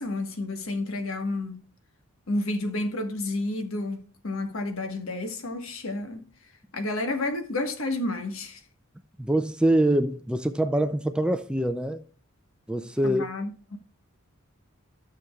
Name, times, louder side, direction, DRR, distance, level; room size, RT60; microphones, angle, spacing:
voice 1, 0.0-1.6 2.3-6.2 6.7-8.6 13.0-13.8, left 2 dB, 70° left, 1.3 m, -30 dB
voice 2, 9.2-12.0 12.7-13.3, right 1 dB, 5° right, 0.3 m, -24 dB
12.5 x 6.5 x 2.3 m
head